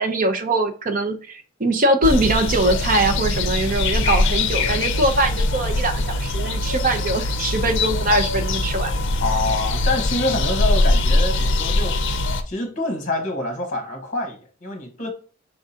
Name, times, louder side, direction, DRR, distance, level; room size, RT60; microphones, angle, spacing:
voice 1, 0.0-8.9, right 2 dB, 40° right, 0.6 m, -22 dB
sound 1, 2.0-12.4, left 2 dB, 55° left, 0.5 m, -22 dB
voice 2, 9.2-12.0 12.5-15.1, left 2 dB, 35° left, 1.2 m, -26 dB
4.6 x 3.7 x 2.8 m
head